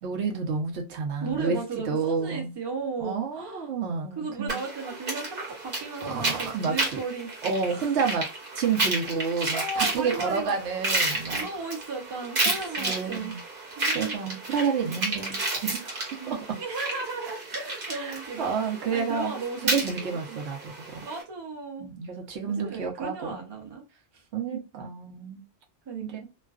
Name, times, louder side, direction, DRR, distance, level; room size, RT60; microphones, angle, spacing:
voice 1, 0.0-1.6 1.9-2.5 3.0-4.6 6.0-7.0 7.4-8.3 8.5-11.5 12.8-13.4 13.9-16.6 17.9-19.3 19.6-21.0 21.8-23.4 24.3-25.4 26.1-26.2, right 5 dB, 85° right, 1.0 m, -30 dB
voice 2, 1.2-3.7 4.2-7.3 7.7-7.9 9.0-9.1 9.5-10.5 11.3-13.3 13.7-14.2 16.2-20.4 21.0-21.9 22.5-23.8 24.1-24.2 24.5-24.6 25.9-26.3, right 4 dB, 30° right, 0.6 m, -35 dB
sound 1, 4.5-21.2, right 2 dB, 55° right, 1.1 m, -32 dB
2.4 x 2.2 x 2.3 m
omnidirectional pair, 1.1 m